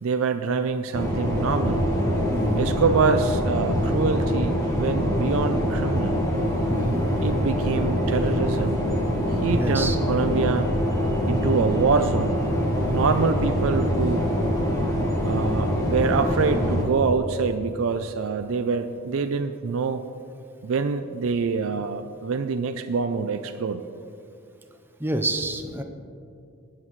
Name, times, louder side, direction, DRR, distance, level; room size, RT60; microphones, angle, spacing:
voice 1, 0.0-1.9 2.6-6.2 7.2-8.8 9.4-10.7 11.3-12.4 12.9-14.3 15.2-20.0 20.6-23.8, right 5 dB, 65° right, 8 dB, 0.4 m, -25 dB
sound 1, 0.9-16.8, equal, 15° left, 1.5 m, -24 dB
voice 2, 2.3-2.7 6.7-7.0 9.5-10.0 12.9-13.2 25.0-25.8, right 2 dB, 10° right, 5 dB, 0.6 m, -28 dB
20.0 x 7.7 x 3.2 m, 2.5 s
head